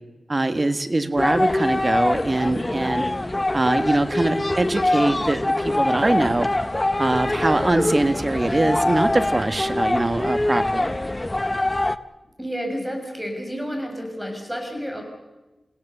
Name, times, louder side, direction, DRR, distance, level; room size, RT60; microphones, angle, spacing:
voice 1, 0.3-3.0 3.5-6.5 7.0-11.0, right 2 dB, 35° right, 9 dB, 1.6 m, -22 dB
sound 1, 1.2-12.0, left 1 dB, 20° left, 0.8 m, -24 dB
voice 2, 12.4-15.0, equal, 5° right, 3 dB, 6.5 m, -30 dB
29.5 x 16.5 x 6.9 m, 1.1 s
wide cardioid pair, 70°, 0 cm